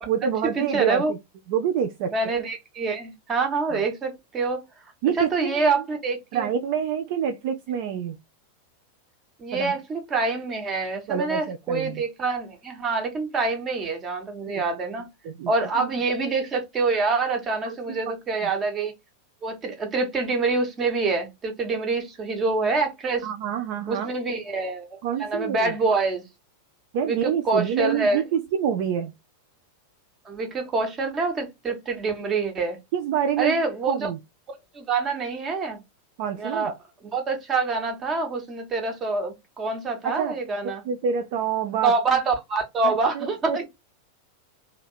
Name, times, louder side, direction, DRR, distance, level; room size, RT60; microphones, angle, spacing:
voice 1, 0.1-1.2 1.5-2.1 3.7-3.9 5.0-5.9 6.3-8.2 9.5-9.8 11.1-12.0 14.5-14.6 15.2-15.9 17.6-17.8 18.0-18.1 18.4-18.5 23.2-24.1 25.0-25.8 26.9-29.1 32.9-33.6 33.9-34.2 36.2-36.7 40.0-40.4 40.6-41.9 42.8-43.7, right 8 dB, 50° right, 0.4 m, -27 dB
voice 2, 0.6-1.1 2.1-4.6 5.2-6.5 9.4-15.1 15.5-18.9 19.4-23.3 23.9-24.9 25.2-26.2 27.1-28.2 30.3-32.8 33.4-34.1 34.7-35.8 36.4-36.7 37.1-40.8 41.8-43.7, right 3 dB, 25° right, 1.1 m, -26 dB
2.8 x 2.8 x 2.2 m
figure-of-eight pair, 90°, 0 cm